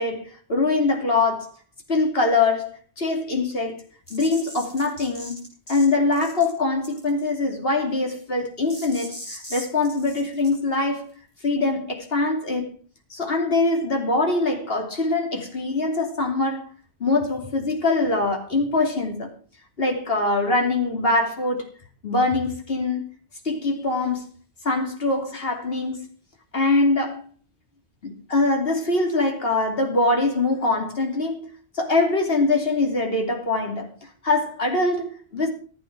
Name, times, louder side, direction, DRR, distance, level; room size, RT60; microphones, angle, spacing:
voice 1, 0.0-1.5 1.9-3.8 4.1-5.4 5.7-11.1 11.4-12.7 13.1-16.7 17.0-19.3 19.8-21.7 22.0-23.0 23.4-24.3 24.6-26.1 26.5-27.2 28.0-31.5 31.7-34.0 34.2-35.5, left 2 dB, 60° left, 3.2 m, -23 dB
sound 1, 4.1-5.9 6.1-6.5 6.8-7.2 8.7-10.5, equal, 30° left, 5.4 m, -39 dB
16.0 x 8.8 x 6.1 m
omnidirectional pair, 1.1 m